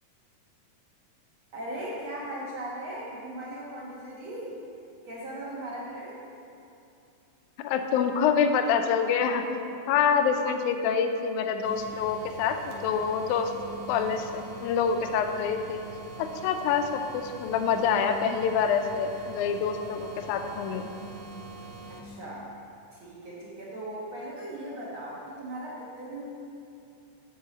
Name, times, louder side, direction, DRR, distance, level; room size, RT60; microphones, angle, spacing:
voice 1, 1.5-4.6 5.0-6.2 21.9-22.5 22.9-26.3, right 1 dB, 55° right, -6 dB, 1.5 m, -38 dB
voice 2, 7.6-9.4 9.9-13.5 13.9-15.8 16.2-20.9, left 6 dB, 80° left, 6 dB, 1.9 m, -26 dB
sound 1, 11.6-22.0, right 3 dB, 80° right, 2.2 m, -43 dB
8.9 x 6.5 x 4.0 m, 2.7 s
omnidirectional pair, 3.7 m